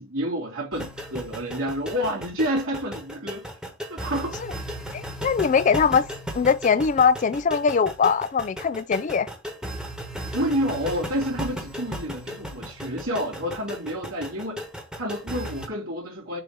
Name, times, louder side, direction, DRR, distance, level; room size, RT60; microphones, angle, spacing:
voice 1, 0.0-3.5 3.9-4.4 10.3-14.6 15.0-16.4, equal, 85° right, 3.3 m, -29 dB
sound 1, 0.7-15.7, equal, 5° right, 1.2 m, -36 dB
voice 2, 4.9-6.1 6.3-9.3, left 6 dB, 35° left, 0.3 m, -21 dB
6.9 x 2.8 x 5.3 m
head